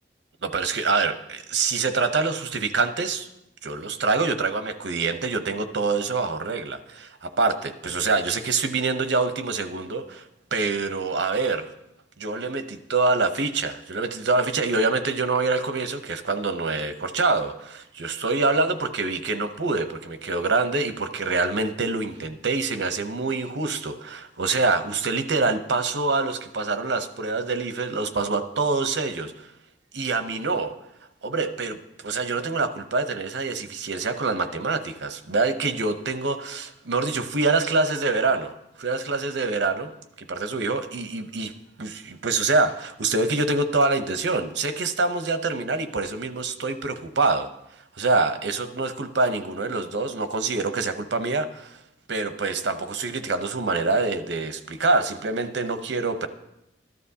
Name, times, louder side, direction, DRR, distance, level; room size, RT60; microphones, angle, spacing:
voice 1, 0.4-3.3 3.6-10.2 10.5-11.7 12.2-29.5 29.9-30.7 31.2-38.5 38.8-39.9 40.2-41.5 41.8-47.5 48.0-51.8 52.1-56.3, right 3 dB, 80° right, 9 dB, 0.8 m, -25 dB
13.5 x 12.0 x 2.8 m, 0.87 s
head